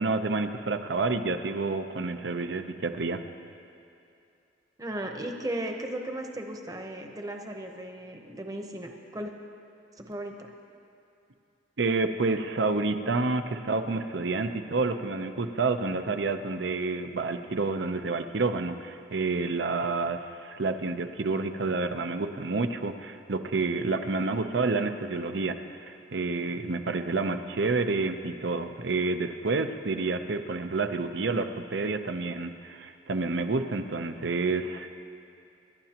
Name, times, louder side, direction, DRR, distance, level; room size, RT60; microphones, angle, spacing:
voice 1, 0.0-3.2 11.8-25.6 25.9-34.9, right 3 dB, 75° right, 8 dB, 0.7 m, -29 dB
voice 2, 4.8-9.3 10.0-10.3, right 1 dB, 20° right, 3 dB, 0.9 m, -36 dB
26.5 x 12.0 x 2.9 m, 2.6 s
head